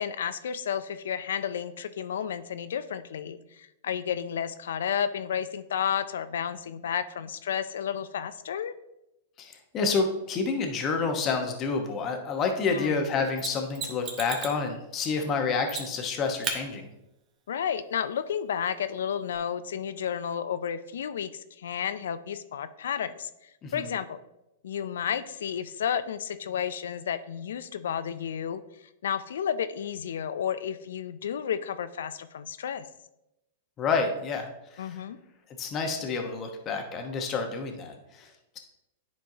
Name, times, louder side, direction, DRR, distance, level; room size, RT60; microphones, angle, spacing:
voice 1, 0.0-8.7 12.7-13.1 17.5-24.2 24.6-32.8 34.8-35.2, left 8 dB, 80° left, 13 dB, 0.4 m, -32 dB
voice 2, 9.4-16.9 23.6-23.9 33.8-35.0 35.6-38.3, left 4 dB, 30° left, 4 dB, 1.1 m, -29 dB
Mechanisms, 13.4-14.6 15.7-16.1 16.4-16.6 19.3-19.4, right 5 dB, 35° right, 1.2 m, -34 dB
10.5 x 4.5 x 2.8 m, 0.90 s
hypercardioid pair, 125°, 0 cm